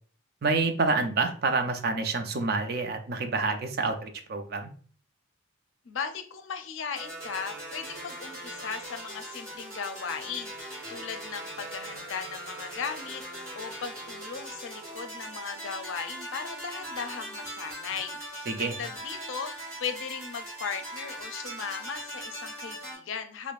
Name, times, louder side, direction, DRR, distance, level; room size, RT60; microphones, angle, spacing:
voice 1, 0.4-4.7 18.5-18.8, right 3 dB, 50° right, 6 dB, 0.5 m, -28 dB
voice 2, 5.9-13.2 13.5-23.5, left 6 dB, 75° left, 8 dB, 0.5 m, -37 dB
sound 1, 7.0-23.0, right 1 dB, 15° right, 1.3 m, -40 dB
4.6 x 2.1 x 2.4 m, 0.43 s
head